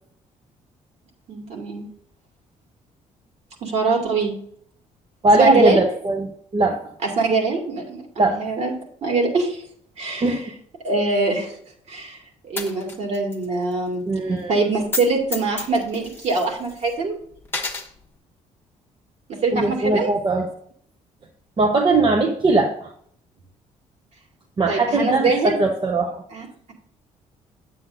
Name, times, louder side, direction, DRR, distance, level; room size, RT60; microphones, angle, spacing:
voice 1, 1.3-1.9 3.6-4.3 5.4-5.8 7.0-8.7 9.0-9.6 10.0-10.5 10.8-11.6 11.9-14.0 14.5-17.1 19.4-20.1 24.7-25.6 26.3-26.7, right 3 dB, 60° right, 0 dB, 2.4 m, -23 dB
voice 2, 5.2-6.3 6.5-6.8 8.2-8.4 10.2-10.4 14.1-14.5 19.5-20.5 21.6-22.9 24.6-26.2, right 2 dB, 40° right, 2 dB, 0.9 m, -19 dB
Coin (dropping), 12.6-13.4 13.7-13.8 14.8-15.1 15.3-16.9 17.4-17.9, left 3 dB, 15° left, 1.3 m, -30 dB
9.4 x 7.8 x 2.6 m, 0.64 s
cardioid pair, 105°, 13 cm